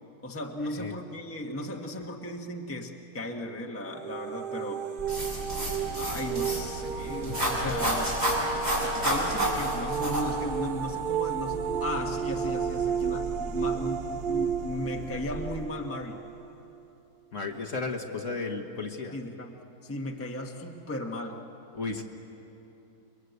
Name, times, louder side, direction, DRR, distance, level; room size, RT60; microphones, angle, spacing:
voice 1, 0.2-4.8 6.0-8.1 8.5-16.2 19.1-19.5 19.8-21.4 22.0-22.1, left 1 dB, 10° left, 2 dB, 1.2 m, -36 dB
sound 1, 3.8-16.7, right 7 dB, 70° right, 0.4 m, -33 dB
sound 2, 5.0-15.7, right 1 dB, 50° right, 2.5 m, -41 dB
sound 3, 5.1-10.2, right 1 dB, 25° right, 6.5 m, -30 dB
voice 2, 17.3-19.2 21.7-22.0, left 3 dB, 45° left, 3 dB, 1.7 m, -34 dB
29.0 x 23.0 x 8.1 m, 2.9 s
omnidirectional pair, 1.9 m